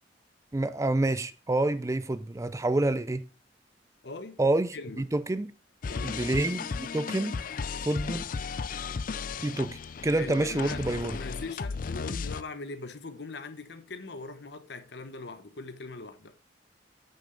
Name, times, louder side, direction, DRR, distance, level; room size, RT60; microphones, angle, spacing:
voice 1, 0.5-3.3 4.4-5.5 6.0-7.4 7.8-8.2 9.4-11.2, right 2 dB, 15° right, 0.4 m, -28 dB
voice 2, 4.0-4.4 4.7-5.0 5.9-6.3 10.2-16.4, left 3 dB, 65° left, 1.0 m, -41 dB
sound 1, 5.8-12.4, left 5 dB, 50° left, 0.4 m, -35 dB
8.5 x 6.6 x 3.9 m
head